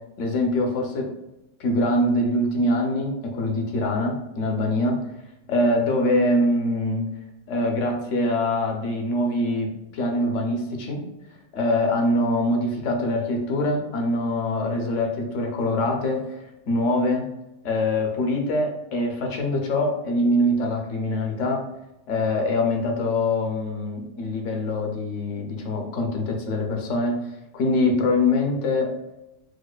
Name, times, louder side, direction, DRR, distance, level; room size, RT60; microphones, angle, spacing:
voice 1, 0.2-1.1 1.6-5.0 5.5-7.1 7.5-11.0 11.5-17.3 17.6-21.6 22.1-27.2 27.5-28.9, left 1 dB, 75° left, 2 dB, 1.0 m, -24 dB
4.7 x 2.1 x 2.3 m, 0.92 s
omnidirectional pair, 1.3 m